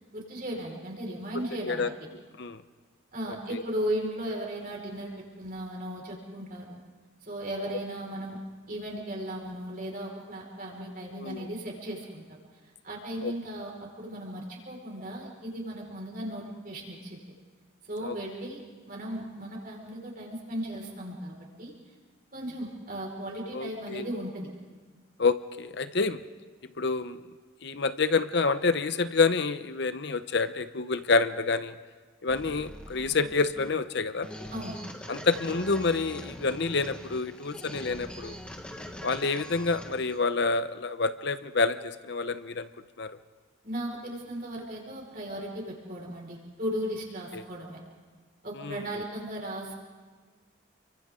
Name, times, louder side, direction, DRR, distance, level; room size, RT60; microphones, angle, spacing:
voice 1, 0.1-1.9 3.1-6.8 7.2-8.4 8.7-12.4 12.8-17.2 17.9-21.7 22.3-24.5 34.5-34.8 43.6-47.8 48.4-49.8, right 1 dB, 45° right, -1 dB, 5.1 m, -36 dB
voice 2, 11.1-11.5 13.2-13.3 18.0-18.1 23.5-24.1 25.2-26.2 26.8-27.2 27.6-31.7 32.2-34.3 35.1-38.4 39.0-42.7 43.0-43.2 47.3-47.4 48.6-48.8, left 4 dB, 60° left, 11 dB, 0.8 m, -28 dB
sound 1, 32.3-40.2, equal, 5° left, 1.5 m, -43 dB
30.0 x 24.0 x 3.8 m, 1.5 s
head